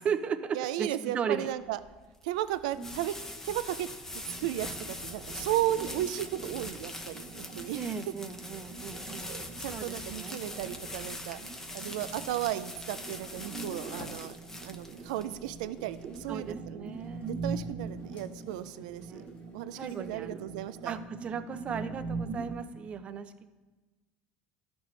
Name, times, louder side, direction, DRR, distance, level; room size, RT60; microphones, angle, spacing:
voice 1, 0.0-1.5 2.8-3.0 7.7-9.3 9.7-10.4 16.3-17.3 19.0-19.3 19.8-20.4 20.9-23.5, right 6 dB, 35° right, 10 dB, 0.6 m, -36 dB
voice 2, 0.5-1.8 2.2-3.1 3.4-3.9 4.4-7.8 9.2-11.4 11.7-14.4 14.6-16.9 17.3-19.2 19.5-21.0, right 13 dB, 90° right, 13 dB, 0.4 m, -35 dB
sound 1, 1.6-16.5, left 1 dB, 15° left, 0.8 m, -43 dB
sound 2, 4.2-22.7, right 4 dB, 60° right, 1.4 m, -43 dB
sound 3, 7.1-21.4, left 3 dB, 45° left, 1.2 m, -59 dB
12.5 x 6.0 x 3.2 m, 1.2 s
supercardioid pair, 125°, 4 cm